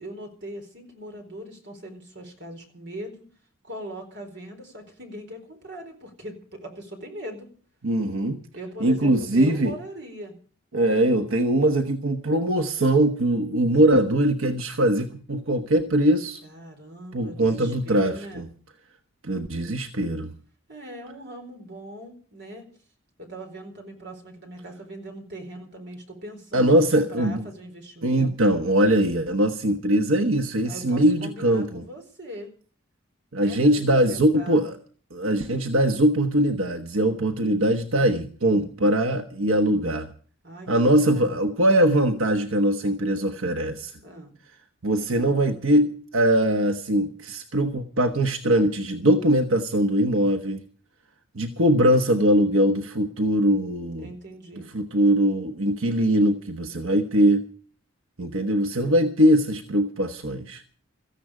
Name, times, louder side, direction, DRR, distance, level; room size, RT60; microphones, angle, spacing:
voice 1, 0.0-3.3 3.6-7.5 8.5-10.4 16.4-18.5 20.7-22.7 23.2-28.3 30.6-32.5 33.4-34.7 40.4-41.4 44.0-44.3 53.9-54.7, right 1 dB, 55° right, 4 dB, 4.2 m, -40 dB
voice 2, 7.8-8.4 8.8-9.8 10.7-16.4 17.1-18.5 19.2-20.3 26.5-27.4 28.0-31.8 33.3-34.8 35.1-40.1 40.7-43.9 44.8-50.6 51.3-54.1 54.7-57.5 58.2-60.6, right 1 dB, 90° right, 6 dB, 1.3 m, -21 dB
17.0 x 14.5 x 5.0 m, 0.43 s
head